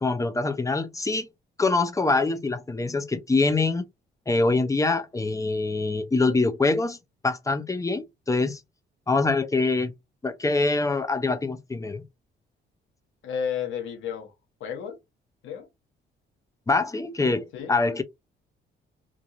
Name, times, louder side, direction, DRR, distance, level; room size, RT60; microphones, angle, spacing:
voice 1, 0.0-1.3 1.6-3.8 4.3-7.0 7.2-8.6 9.1-9.9 10.2-12.0 16.7-18.0, left 3 dB, 15° left, 0.5 m, -24 dB
voice 2, 13.2-14.3 14.6-15.0 15.4-15.7 17.5-17.8, left 7 dB, 80° left, 1.1 m, -32 dB
2.9 x 2.5 x 2.5 m
cardioid pair, 90°, 20 cm